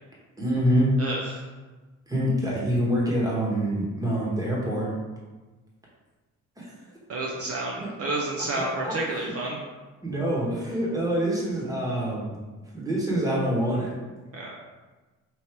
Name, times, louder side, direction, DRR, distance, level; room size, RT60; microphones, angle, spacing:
voice 1, 0.4-1.0 2.1-4.9 6.6-6.7 7.8-7.9 8.6-9.3 10.0-12.4 12.7-13.9, equal, 10° right, -5 dB, 1.3 m, -26 dB
voice 2, 1.0-1.4 7.1-9.6 14.3-14.6, right 2 dB, 50° right, -2 dB, 0.7 m, -30 dB
3.2 x 2.8 x 4.5 m, 1.2 s
cardioid pair, 90°, 30 cm